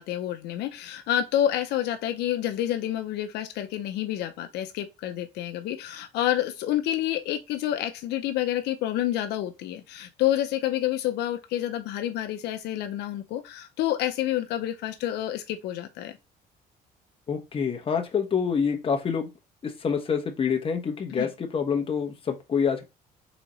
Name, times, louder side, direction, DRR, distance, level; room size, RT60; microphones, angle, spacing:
voice 1, 0.0-16.2 21.1-21.3, left 12 dB, 80° left, 0.6 m, -28 dB
voice 2, 17.3-19.3 19.6-22.8, left 6 dB, 35° left, 1.1 m, -27 dB
4.1 x 3.6 x 3.1 m
cardioid pair, 110°, 17 cm